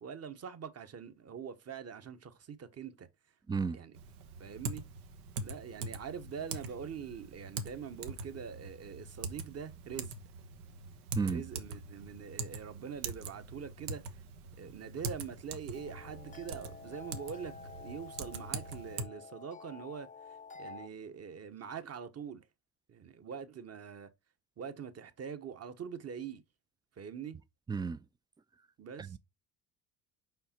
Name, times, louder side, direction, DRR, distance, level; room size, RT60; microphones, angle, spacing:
voice 1, 0.0-3.1 3.7-3.9 4.4-4.8 5.4-10.1 11.2-14.0 14.6-20.1 20.5-22.5 22.9-24.1 24.6-26.4 27.0-27.4 28.8-29.2, right 7 dB, 35° right, 1.1 m, -44 dB
voice 2, 3.5-3.8 11.2-11.4 27.7-28.0 29.1-29.2, right 5 dB, 10° right, 0.3 m, -32 dB
Typing, 3.9-19.0, right 3 dB, 80° right, 1.2 m, -43 dB
sound 1, 15.7-20.9, left 5 dB, 15° left, 0.6 m, -50 dB
5.6 x 5.0 x 4.3 m
hypercardioid pair, 70°, 44 cm